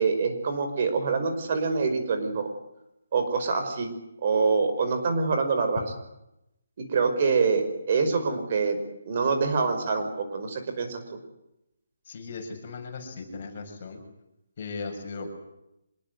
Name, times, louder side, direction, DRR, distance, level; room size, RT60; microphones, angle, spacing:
voice 1, 0.0-2.5 3.1-3.9 4.2-5.8 6.9-8.8 9.1-11.0, right 4 dB, 40° right, 7 dB, 5.3 m, -25 dB
voice 2, 12.1-14.0 14.6-15.3, left 4 dB, 35° left, 4 dB, 7.0 m, -37 dB
26.0 x 21.5 x 8.2 m, 0.86 s
hypercardioid pair, 170°, 0 cm